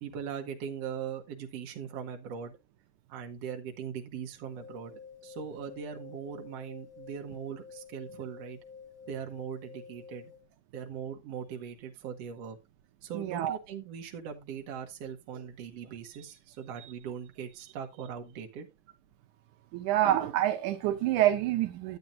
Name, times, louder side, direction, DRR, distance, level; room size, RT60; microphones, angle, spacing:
voice 1, 0.0-2.6 3.1-8.6 9.1-10.3 10.7-12.6 13.0-18.7, right 7 dB, 60° right, 2.2 m, -40 dB
sound 1, 4.4-10.4, left 6 dB, 5° right, 0.7 m, -50 dB
voice 2, 13.1-13.6 19.7-22.0, right 12 dB, 85° right, 2.3 m, -27 dB
10.5 x 8.6 x 2.6 m
omnidirectional pair, 3.5 m